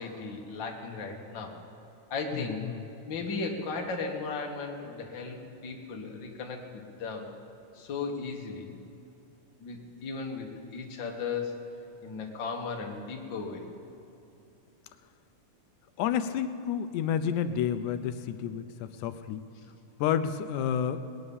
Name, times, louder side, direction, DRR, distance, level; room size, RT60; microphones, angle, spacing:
voice 1, 0.0-1.5 2.1-2.7 3.1-5.4 5.6-7.3 7.7-8.7 9.6-11.6 12.0-13.6, left 4 dB, 45° left, 1 dB, 2.1 m, -36 dB
voice 2, 2.3-2.8 16.0-19.4 20.0-21.0, left 8 dB, 90° left, 10 dB, 2.1 m, -30 dB
19.5 x 9.7 x 7.1 m, 2.9 s
omnidirectional pair, 3.4 m